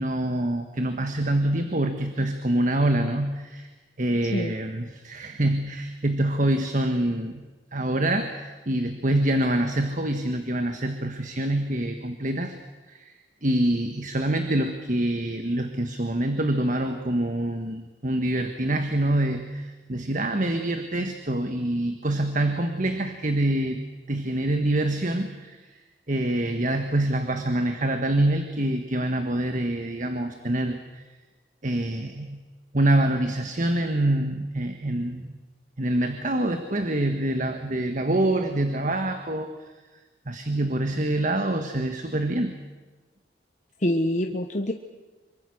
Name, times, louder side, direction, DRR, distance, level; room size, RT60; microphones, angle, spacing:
voice 1, 0.0-3.7 4.0-7.5 7.7-12.6 12.9-13.1 13.4-23.8 24.1-25.7 26.1-31.0 31.6-32.4 32.7-35.3 35.8-39.5 40.3-42.5, right 1 dB, 45° right, 6 dB, 1.4 m, -25 dB
voice 2, 43.8-44.7, left 1 dB, 40° left, 4 dB, 1.1 m, -25 dB
26.0 x 24.0 x 6.5 m, 1.2 s
head